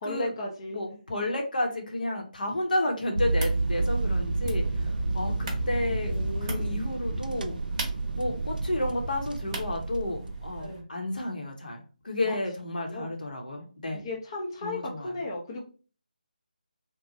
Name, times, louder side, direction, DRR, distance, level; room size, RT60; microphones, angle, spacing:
voice 1, 0.0-0.8 6.1-6.8 10.6-10.9 12.2-12.4 12.8-13.1 13.9-15.6, left 2 dB, 30° left, -2 dB, 0.5 m, -35 dB
voice 2, 0.7-4.6 5.1-6.1 6.4-7.6 8.2-11.8 12.0-14.0 14.6-15.1, left 1 dB, 65° left, 2 dB, 0.8 m, -31 dB
sound 1, 3.2-10.8, right 2 dB, 30° right, 0.8 m, -43 dB
sound 2, 3.2-10.7, right 2 dB, 70° right, 0.3 m, -30 dB
3.0 x 2.1 x 2.6 m, 0.37 s
figure-of-eight pair, 155°, 5 cm